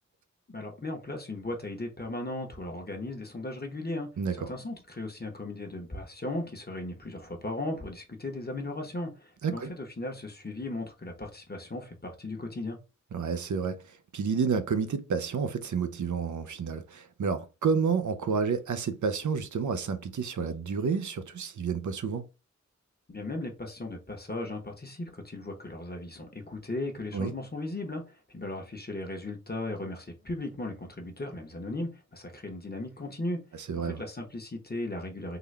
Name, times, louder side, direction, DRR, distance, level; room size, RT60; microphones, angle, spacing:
voice 1, 0.5-4.1 4.5-12.8 23.1-33.4 33.8-35.4, left 2 dB, 35° left, 0.9 m, -37 dB
voice 2, 4.2-4.5 9.4-9.7 13.1-22.3 27.1-27.3 33.7-34.0, right 5 dB, 85° right, 0.5 m, -30 dB
3.8 x 2.2 x 3.2 m
wide cardioid pair, 75°, 29 cm